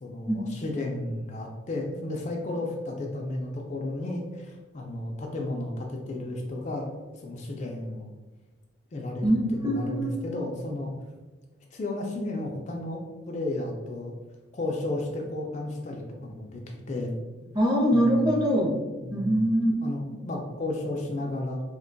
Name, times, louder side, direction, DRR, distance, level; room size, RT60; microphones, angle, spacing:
voice 1, 0.0-6.9 7.2-8.1 8.9-9.3 9.5-10.9 11.7-13.0 13.3-14.1 14.5-17.1 17.9-18.4 19.0-19.4 19.8-21.6, left 2 dB, 35° left, 0 dB, 0.3 m, -33 dB
voice 2, 9.2-10.2 17.5-18.7 19.1-19.7, equal, 20° right, -3 dB, 0.6 m, -23 dB
2.8 x 2.2 x 3.8 m, 1.2 s
head